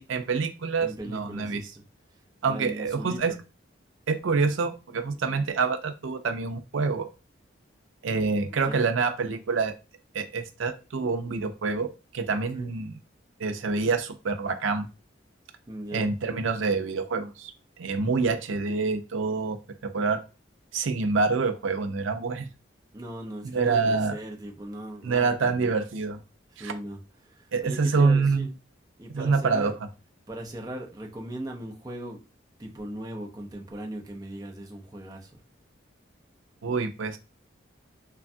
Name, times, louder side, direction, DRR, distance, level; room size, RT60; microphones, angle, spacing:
voice 1, 0.0-1.6 2.4-3.3 4.1-7.1 8.0-9.7 10.1-13.0 13.4-14.9 15.9-17.5 17.8-19.6 19.8-20.2 20.7-22.5 23.5-24.1 25.0-26.2 26.6-26.7 27.5-28.5 29.1-29.7 36.6-37.2, right 4 dB, 90° right, 8 dB, 0.5 m, -26 dB
voice 2, 0.8-1.8 2.4-3.2 8.3-8.9 12.3-12.7 15.7-16.1 22.9-25.8 26.5-28.5 29.0-29.7 30.3-32.2 32.6-35.3, right 1 dB, 20° right, 0 dB, 0.6 m, -39 dB
3.1 x 2.3 x 2.6 m, 0.30 s
head